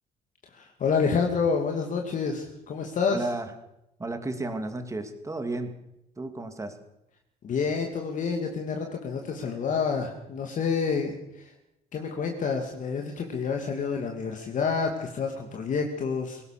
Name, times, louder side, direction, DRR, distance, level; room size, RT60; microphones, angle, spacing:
voice 1, 0.5-3.3 7.4-11.5 11.9-16.4, left 5 dB, 50° left, 3 dB, 2.7 m, -28 dB
voice 2, 3.1-3.5 4.0-5.8 6.2-6.8, right 2 dB, 20° right, 7 dB, 2.8 m, -33 dB
21.5 x 18.0 x 6.9 m, 0.86 s
cardioid pair, 110°, 17 cm